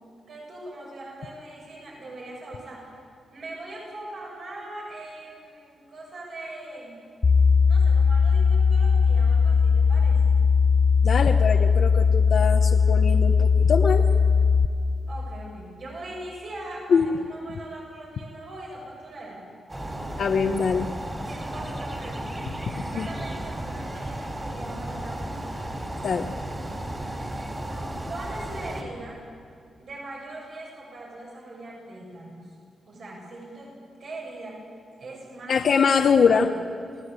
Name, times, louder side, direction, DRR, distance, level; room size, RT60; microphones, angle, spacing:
voice 1, 0.3-3.0 3.3-7.0 7.6-10.4 15.1-19.4 21.1-22.5 22.9-25.7 28.1-29.2 29.8-32.6 32.9-33.7 34.0-34.6 35.0-35.6 36.2-36.6, right 2 dB, 60° right, -2 dB, 7.4 m, -41 dB
sound 1, 7.2-14.7, left 5 dB, 35° left, 0.6 m, -19 dB
voice 2, 11.0-14.0 16.9-17.1 20.2-20.9 22.8-23.1 26.0-26.3 35.5-36.5, left 6 dB, 60° left, 3 dB, 1.1 m, -23 dB
sound 2, 19.7-28.8, right 1 dB, 15° right, 3.9 m, -34 dB
29.0 x 18.5 x 8.3 m, 2.4 s
wide cardioid pair, 120°, 0 cm